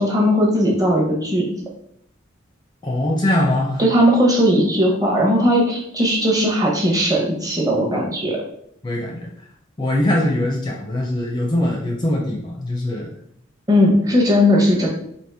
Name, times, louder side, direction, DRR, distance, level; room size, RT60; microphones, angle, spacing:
voice 1, 0.0-1.5 3.8-8.4 13.7-14.9, equal, 20° right, -2 dB, 0.8 m, -17 dB
voice 2, 2.8-3.8 8.8-9.3 9.8-13.1, left 1 dB, 20° left, 0 dB, 0.5 m, -22 dB
4.4 x 2.9 x 3.4 m, 0.70 s
head